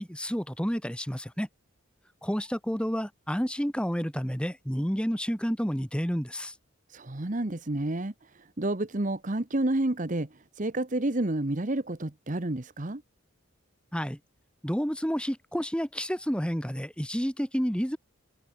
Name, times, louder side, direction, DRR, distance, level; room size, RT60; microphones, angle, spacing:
voice 1, 0.0-1.5 2.2-6.5 13.9-14.2 14.6-18.0, equal, 5° left, 3.2 m, -30 dB
voice 2, 6.9-13.0, right 1 dB, 35° right, 1.1 m, -30 dB
head